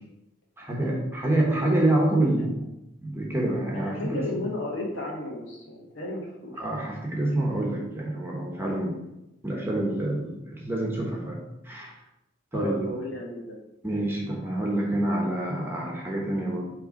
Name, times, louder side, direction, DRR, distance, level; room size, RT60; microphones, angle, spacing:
voice 1, 0.6-2.7 3.0-4.3 6.6-8.9 9.4-11.9 12.5-12.9 13.8-16.6, right 1 dB, 10° right, -2 dB, 1.2 m, -27 dB
voice 2, 3.7-6.6 12.5-13.6, left 1 dB, 70° left, -2 dB, 1.6 m, -33 dB
5.7 x 3.4 x 5.3 m, 0.91 s
head